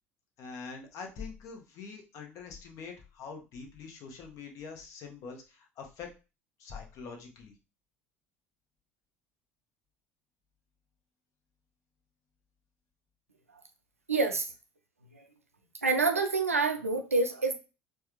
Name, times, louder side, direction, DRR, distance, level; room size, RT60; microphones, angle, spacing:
voice 1, 0.4-6.1 6.6-7.5, left 5 dB, 50° left, 0.9 m, -44 dB
voice 2, 14.1-14.5 15.1-15.2 15.8-17.5, right 3 dB, 85° right, 0.5 m, -27 dB
4.5 x 2.3 x 3.0 m
figure-of-eight pair, 65°, 7 cm